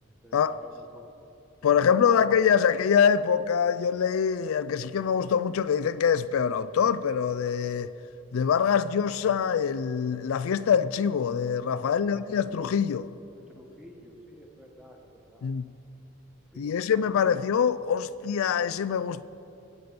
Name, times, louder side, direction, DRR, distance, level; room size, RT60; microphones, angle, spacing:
voice 1, 0.1-1.1 1.6-2.3 11.8-12.8 13.3-15.5 16.5-17.4, equal, 5° right, 1.4 m, -50 dB
voice 2, 1.6-7.9 8.3-13.0 15.4-15.7 16.6-19.2, left 7 dB, 70° left, 0.3 m, -24 dB
22.0 x 8.2 x 5.2 m
head